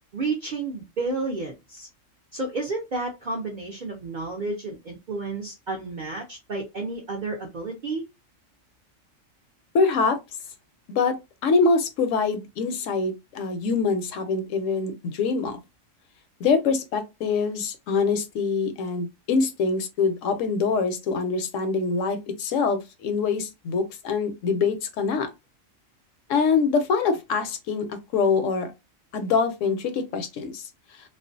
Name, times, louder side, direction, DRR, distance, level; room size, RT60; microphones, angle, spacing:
voice 1, 0.1-1.9 2.3-8.0, right 3 dB, 60° right, 0.5 m, -31 dB
voice 2, 9.7-10.2 10.9-11.2 11.4-15.6 16.4-25.3 26.3-28.7 29.1-30.6, left 4 dB, 75° left, 0.9 m, -24 dB
2.4 x 2.1 x 2.5 m
omnidirectional pair, 1.4 m